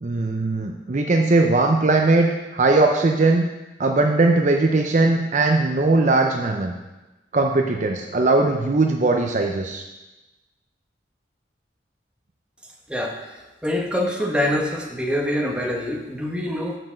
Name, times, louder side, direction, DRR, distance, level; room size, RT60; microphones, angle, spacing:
voice 1, 0.0-3.5 3.8-6.7 7.3-9.8, right 2 dB, 45° right, 3 dB, 0.6 m, -19 dB
voice 2, 13.6-16.8, left 1 dB, 5° right, -1 dB, 1.1 m, -25 dB
6.8 x 6.0 x 6.3 m, 1.1 s
head